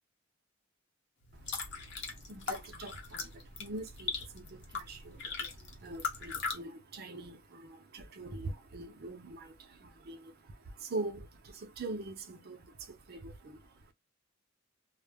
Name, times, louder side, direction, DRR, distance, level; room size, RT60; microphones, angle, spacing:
sound 1, 1.2-6.6, left 4 dB, 60° left, 0.7 m, -40 dB
voice 1, 1.3-13.9, right 2 dB, 50° right, 0.6 m, -44 dB
2.1 x 2.0 x 3.4 m
head